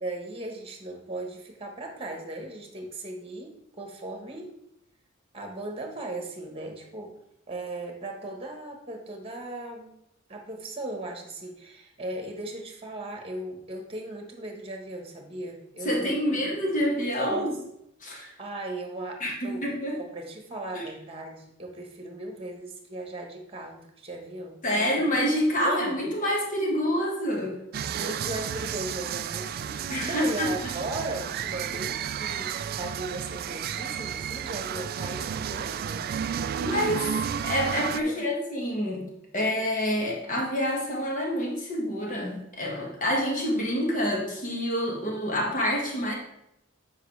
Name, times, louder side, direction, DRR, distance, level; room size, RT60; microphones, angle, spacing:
voice 1, 0.0-4.5 5.3-7.2 7.5-9.9 10.3-16.3 17.2-17.5 18.0-19.6 20.0-25.1 25.6-26.0 27.8-36.4 38.0-38.2, right 2 dB, 30° right, 3 dB, 1.3 m, -37 dB
voice 2, 15.8-17.6 18.0-18.3 19.2-20.0 20.7-20.8 24.6-27.6 29.9-30.7 36.6-37.1 37.4-39.1 39.3-46.1, equal, 40° left, -1 dB, 1.8 m, -27 dB
sound 1, 27.7-38.0, right 8 dB, 50° right, 0.3 m, -32 dB
7.8 x 5.4 x 3.3 m, 0.80 s
head